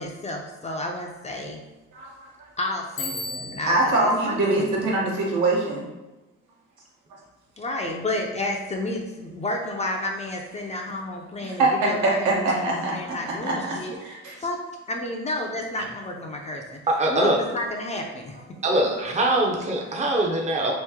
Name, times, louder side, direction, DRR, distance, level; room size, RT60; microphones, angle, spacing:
voice 1, 0.0-1.6 2.6-4.9 7.6-14.0 14.4-14.6 14.9-16.8 17.1-18.4, left 1 dB, 20° left, 1 dB, 0.5 m, -31 dB
Bicycle bell, 3.0-3.9, left 3 dB, 65° left, 0.8 m, -33 dB
voice 2, 3.7-5.9 11.6-13.1 13.4-13.7 14.0-14.3, right 2 dB, 80° right, -4 dB, 1.1 m, -23 dB
voice 3, 17.0-17.4 18.6-20.7, right 1 dB, 25° right, 0 dB, 0.6 m, -22 dB
3.0 x 2.6 x 3.5 m, 1.1 s
cardioid pair, 90°, 30 cm